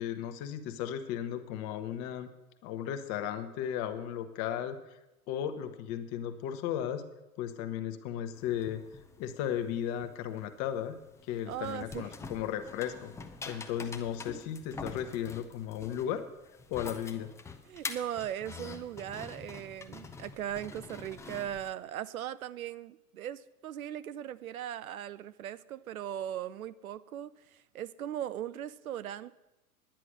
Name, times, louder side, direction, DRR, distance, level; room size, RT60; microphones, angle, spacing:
voice 1, 0.0-2.3 2.6-4.8 5.3-7.0 7.4-8.8 9.2-11.0 11.3-13.1 13.5-16.3 16.7-17.3, left 10 dB, 35° left, 1.1 m, -35 dB
sound 1, 8.3-21.7, left 4 dB, 5° left, 0.5 m, -46 dB
voice 2, 11.5-12.1 13.5-13.6 17.7-29.4, right 11 dB, 70° right, 0.6 m, -39 dB
10.0 x 9.7 x 6.4 m
figure-of-eight pair, 95°, 45 cm